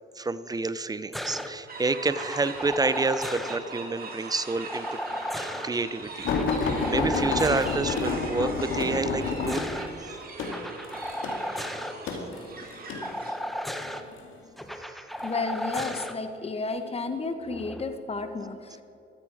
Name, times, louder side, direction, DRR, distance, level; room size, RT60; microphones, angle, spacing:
voice 1, 0.2-5.0 5.6-9.7, right 3 dB, 20° right, 14 dB, 0.7 m, -29 dB
sound 1, 1.1-1.5 2.0-3.6 4.7-5.7 6.2-7.8 9.1-9.9 10.4-11.9 13.0-14.0 14.6-16.1 17.4-17.8, equal, ahead, 1.2 m, -35 dB
sound 2, 1.7-13.3, right 4 dB, 50° right, 2.7 m, -41 dB
sound 3, 6.2-13.1 13.8-14.3 15.2-15.8 16.6-16.8 17.1-17.2, left 4 dB, 80° left, 2.3 m, -29 dB
voice 2, 15.2-18.8, left 3 dB, 30° left, 8 dB, 1.4 m, -32 dB
15.0 x 13.0 x 5.0 m, 2.8 s
cardioid pair, 90°, 20 cm